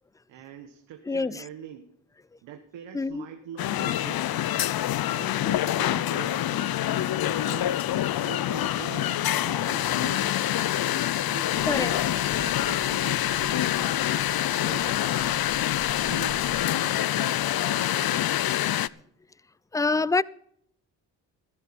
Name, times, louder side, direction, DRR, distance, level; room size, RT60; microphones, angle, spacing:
voice 1, 0.3-1.9 2.4-4.8 5.1-10.3 10.9-15.5 16.0-18.3, right 9 dB, 80° right, 1.4 m, -44 dB
voice 2, 1.1-1.4 2.9-3.2 11.6-11.9 19.7-20.2, left 3 dB, 10° left, 0.4 m, -25 dB
sound 1, 3.6-18.9, left 12 dB, 55° left, 0.6 m, -26 dB
sound 2, 7.8-18.3, right 5 dB, 45° right, 2.2 m, -55 dB
sound 3, 11.5-16.6, right 1 dB, 20° right, 3.5 m, -47 dB
14.5 x 13.5 x 4.2 m
supercardioid pair, 60°, 45 cm